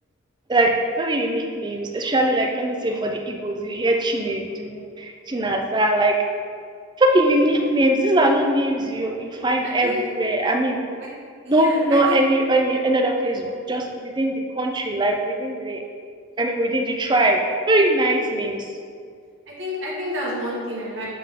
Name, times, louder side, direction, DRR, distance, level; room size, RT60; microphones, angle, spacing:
voice 1, 0.5-6.1 7.0-10.8 11.4-15.8 16.4-17.4 17.7-18.7, right 1 dB, 20° right, 2 dB, 0.5 m, -21 dB
voice 2, 9.6-10.0 11.5-12.2 19.6-21.1, equal, 60° right, -6 dB, 1.4 m, -29 dB
7.5 x 3.8 x 3.6 m, 2.1 s
head